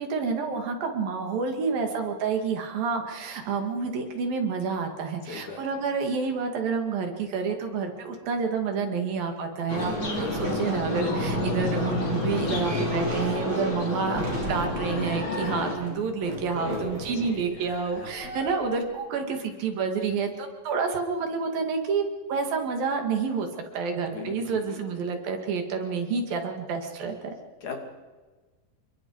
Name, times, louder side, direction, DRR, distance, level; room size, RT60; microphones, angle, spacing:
voice 1, 0.0-23.5 23.7-27.3, right 5 dB, 75° right, 4 dB, 4.0 m, -29 dB
voice 2, 5.3-5.6 12.5-12.9 16.5-18.4 24.1-25.0 27.6-27.8, left 4 dB, 55° left, 3 dB, 3.7 m, -38 dB
sound 1, 9.7-15.8, left 3 dB, 35° left, 2.9 m, -31 dB
sound 2, 9.8-18.9, right 1 dB, 35° right, 3.2 m, -33 dB
28.0 x 23.0 x 4.8 m, 1.3 s
omnidirectional pair, 4.2 m